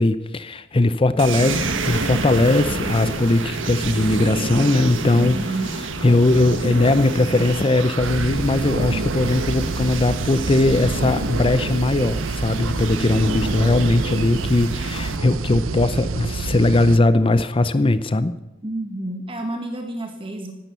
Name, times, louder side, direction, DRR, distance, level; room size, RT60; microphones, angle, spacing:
voice 1, 0.0-5.4 5.8-18.4, left 2 dB, 25° left, 13 dB, 0.6 m, -19 dB
sound 1, 1.2-15.2, right 3 dB, 70° right, 1.5 m, -28 dB
voice 2, 5.1-5.7 18.6-20.5, right 2 dB, 25° right, 4 dB, 1.6 m, -29 dB
sound 2, 8.0-17.0, right 3 dB, 85° right, 0.7 m, -28 dB
17.0 x 12.0 x 7.0 m, 0.98 s
head